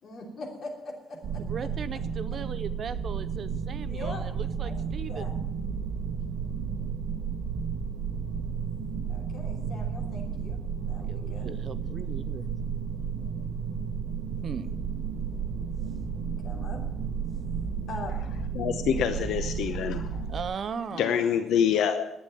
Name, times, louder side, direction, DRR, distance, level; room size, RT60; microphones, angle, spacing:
voice 1, 0.0-1.4 3.9-4.3 4.6-5.3 9.1-10.6 10.9-11.6 16.2-16.8 17.9-18.3, left 2 dB, 45° left, 1 dB, 3.1 m, -42 dB
sound 1, 1.2-20.4, right 6 dB, 70° right, 1.2 m, -32 dB
voice 2, 1.5-5.4 10.8-12.5 14.4-14.7 20.3-21.1, right 6 dB, 40° right, 14 dB, 0.6 m, -38 dB
voice 3, 18.5-20.2 21.0-22.1, left 8 dB, 70° left, 9 dB, 0.7 m, -26 dB
11.5 x 9.0 x 9.1 m, 0.84 s
cardioid pair, 165°, 0 cm